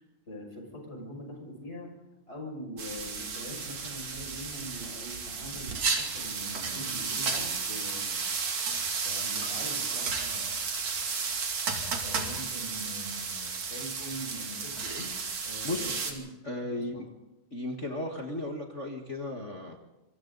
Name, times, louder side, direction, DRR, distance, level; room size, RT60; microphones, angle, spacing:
voice 1, 0.0-1.9 2.3-8.3 9.0-10.6 12.0-15.1 15.4-16.2 16.6-17.0, equal, 15° left, 1 dB, 6.5 m, -43 dB
sound 1, 2.8-16.1, right 5 dB, 50° right, 3.6 m, -33 dB
voice 2, 15.6-16.0 16.4-16.9 17.5-19.8, left 1 dB, 40° left, 1 dB, 1.1 m, -35 dB
26.5 x 24.5 x 4.0 m, 1.0 s
omnidirectional pair, 3.8 m